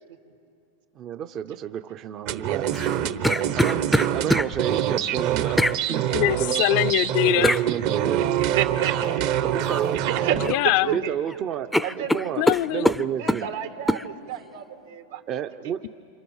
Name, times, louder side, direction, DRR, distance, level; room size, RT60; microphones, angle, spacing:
voice 1, 1.0-2.7 3.5-5.6 5.9-6.1 6.4-6.7 7.4-8.3 9.4-10.0 10.8-13.5 15.3-15.8, right 9 dB, 35° right, 0.7 m, -30 dB
sound 1, 2.3-10.5, right 11 dB, 55° right, 1.2 m, -25 dB
sound 2, 2.7-4.5 5.6-5.8 7.4-7.6 9.6-9.9 10.3-11.0 11.3-11.4 11.7-13.4 13.9-14.0, left 1 dB, 5° left, 0.5 m, -24 dB
voice 2, 6.1-7.6 10.5-10.9 12.4-12.9, left 16 dB, 55° left, 0.5 m, -22 dB
voice 3, 8.5-9.4 10.0-10.4 10.6-11.4 11.8-12.1 13.1-15.2, right 10 dB, 80° right, 2.7 m, -30 dB
28.0 x 27.0 x 7.2 m
supercardioid pair, 125°, 0 cm